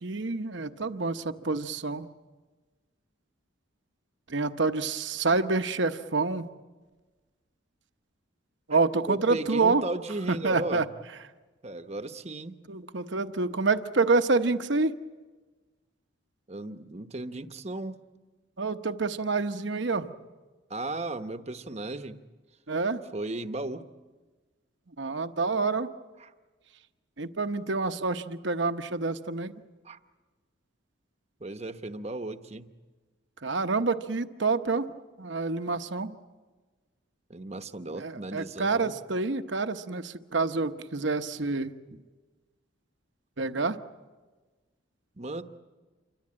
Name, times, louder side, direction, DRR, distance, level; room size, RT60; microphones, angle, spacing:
voice 1, 0.0-2.1 4.3-6.5 8.7-9.8 10.3-10.9 12.7-15.0 18.6-20.1 22.7-23.0 25.0-25.9 27.2-29.5 33.4-34.9 35.2-36.1 37.9-41.7 43.4-43.8, right 3 dB, 60° right, 9 dB, 1.0 m, -27 dB
voice 2, 9.1-10.9 11.6-12.6 16.5-18.0 20.7-22.2 23.1-23.8 26.2-26.3 29.8-30.0 31.4-32.7 37.3-39.0 41.9-42.0 45.2-45.4, right 2 dB, 30° right, 9 dB, 1.0 m, -35 dB
28.0 x 24.5 x 8.7 m, 1.3 s
head